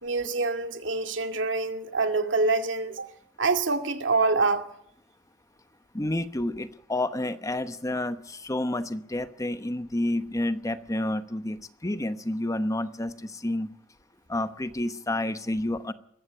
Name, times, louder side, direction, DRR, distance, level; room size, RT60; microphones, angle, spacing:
voice 1, 0.0-3.1 3.4-4.7, right 3 dB, 90° right, 2.3 m, -26 dB
voice 2, 5.9-13.7 14.3-15.9, left 1 dB, 20° left, 0.9 m, -30 dB
20.5 x 15.0 x 9.2 m
head